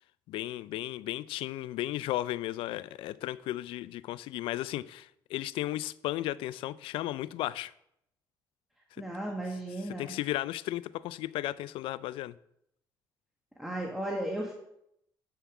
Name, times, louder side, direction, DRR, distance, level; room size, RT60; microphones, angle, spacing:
voice 1, 0.3-7.7 9.9-12.4, left 15 dB, 80° left, 0.4 m, -35 dB
voice 2, 9.0-10.1 13.6-14.5, right 1 dB, 5° right, 1.5 m, -35 dB
8.2 x 5.7 x 4.8 m
supercardioid pair, 75°, 9 cm